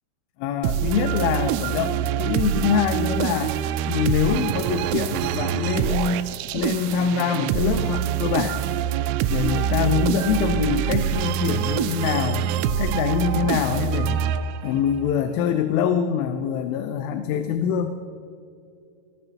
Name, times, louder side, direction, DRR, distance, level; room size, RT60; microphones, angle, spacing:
voice 1, 0.4-3.6 3.9-6.3 6.5-8.6 9.3-12.5 12.8-14.3 14.6-18.0, left 7 dB, 90° left, 8 dB, 3.2 m, -24 dB
sound 1, 0.6-14.9, right 10 dB, 90° right, 3.1 m, -25 dB
19.0 x 17.5 x 2.9 m, 2.5 s
omnidirectional pair, 5.5 m